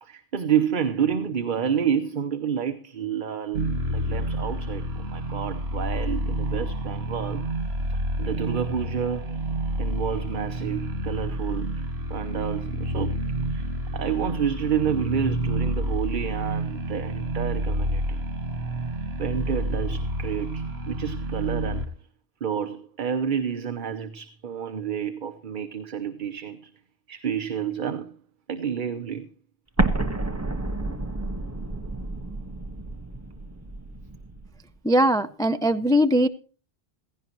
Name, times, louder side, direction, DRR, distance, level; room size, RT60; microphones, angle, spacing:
voice 1, 0.0-7.5 7.9-9.3 9.8-11.8 12.1-13.2 13.5-18.2 19.2-21.8 22.4-26.7 27.1-28.2 28.5-29.3, right 8 dB, 55° right, 1.0 m, -29 dB
sound 1, 3.5-21.9, right 1 dB, 80° right, 1.9 m, -29 dB
Explosion, 29.8-34.5, right 2 dB, 15° right, 1.2 m, -30 dB
voice 2, 34.8-36.3, equal, 5° left, 0.3 m, -20 dB
16.0 x 16.0 x 3.0 m
omnidirectional pair, 1.0 m